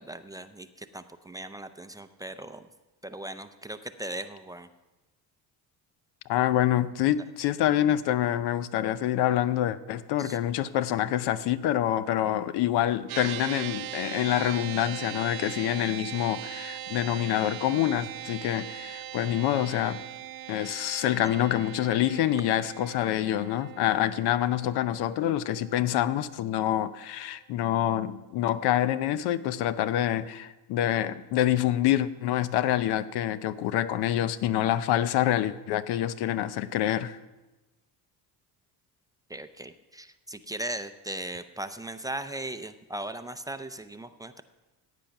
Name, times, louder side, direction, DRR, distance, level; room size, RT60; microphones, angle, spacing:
voice 1, 0.0-2.6 3.0-4.7 10.2-10.4 21.2-21.3 39.3-44.4, right 1 dB, 10° right, 9 dB, 0.5 m, -38 dB
voice 2, 6.3-20.0 20.5-37.2, left 12 dB, 85° left, 15 dB, 0.7 m, -26 dB
sound 1, 13.1-26.6, right 12 dB, 65° right, 0.8 m, -40 dB
15.5 x 9.2 x 5.8 m, 1.1 s
cardioid pair, 125°, 38 cm